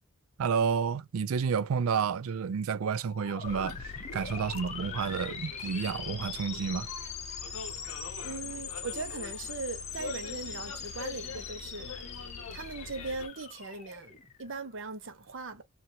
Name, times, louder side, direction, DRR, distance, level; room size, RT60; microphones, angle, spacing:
voice 1, 0.4-6.9, right 6 dB, 80° right, 0.4 m, -30 dB
sound 1, 3.1-14.7, left 6 dB, 30° left, 0.7 m, -42 dB
Bus, 3.4-13.3, left 5 dB, 80° left, 0.6 m, -44 dB
voice 2, 8.2-11.9 12.5-15.6, right 3 dB, 60° right, 0.8 m, -39 dB
2.8 x 2.6 x 2.7 m
head